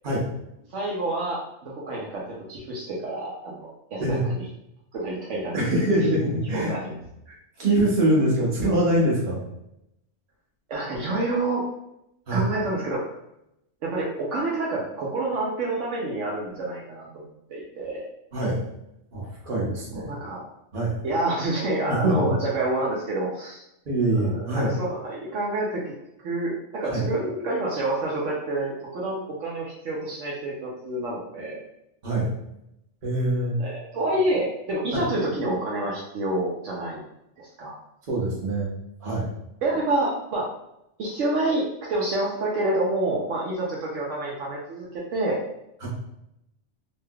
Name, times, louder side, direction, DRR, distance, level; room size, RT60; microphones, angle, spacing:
voice 1, 0.7-4.4 4.9-5.8 6.5-7.0 10.7-11.6 12.3-13.1 13.8-18.1 20.0-20.4 21.0-23.6 24.2-25.9 26.2-31.6 33.6-37.0 37.4-37.7 39.6-40.5 41.0-45.4, right 2 dB, 75° right, -4 dB, 1.0 m, -28 dB
voice 2, 5.5-6.8 7.3-9.4 12.3-12.4 18.3-18.6 19.1-20.1 20.7-20.9 21.9-22.4 23.8-24.7 26.8-27.0 32.0-32.3 33.0-33.5 34.9-35.0 38.1-38.7 39.0-39.3 45.8-45.9, right 1 dB, 45° right, -5 dB, 1.1 m, -24 dB
3.2 x 2.8 x 2.2 m, 0.82 s
omnidirectional pair, 1.3 m